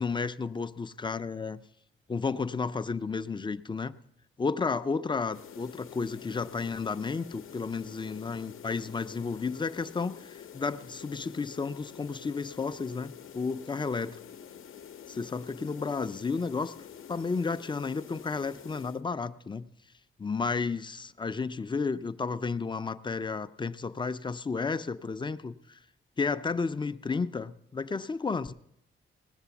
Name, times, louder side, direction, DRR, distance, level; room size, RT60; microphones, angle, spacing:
voice 1, 0.0-1.6 2.1-3.9 4.4-14.1 15.1-16.7 17.1-19.7 20.2-25.8 26.2-28.5, left 4 dB, 20° left, 12 dB, 0.4 m, -32 dB
sound 1, 5.3-19.0, left 8 dB, 75° left, 0.7 m, -48 dB
19.0 x 7.5 x 7.0 m, 0.78 s
wide cardioid pair, 145°, 21 cm